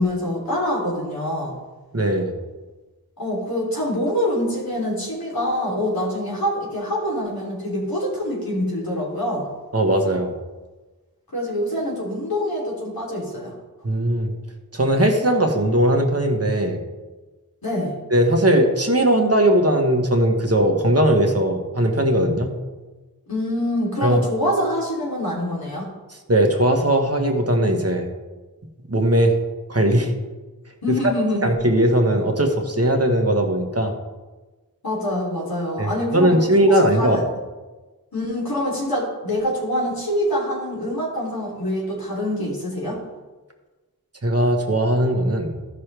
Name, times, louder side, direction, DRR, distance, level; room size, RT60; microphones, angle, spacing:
voice 1, 0.0-1.6 3.2-9.5 11.3-13.5 17.6-18.0 23.3-25.9 30.8-31.4 34.8-37.2 38.1-43.0, left 1 dB, 70° left, -5 dB, 3.2 m, -25 dB
voice 2, 1.9-2.3 9.7-10.3 13.8-14.3 14.7-16.8 18.1-22.5 24.0-24.2 26.3-28.1 28.9-29.3 29.7-30.1 31.4-33.9 35.8-37.2 44.2-45.5, right 1 dB, 40° right, 3 dB, 1.3 m, -19 dB
14.0 x 6.0 x 3.4 m, 1.2 s
wide cardioid pair, 45°, 36 cm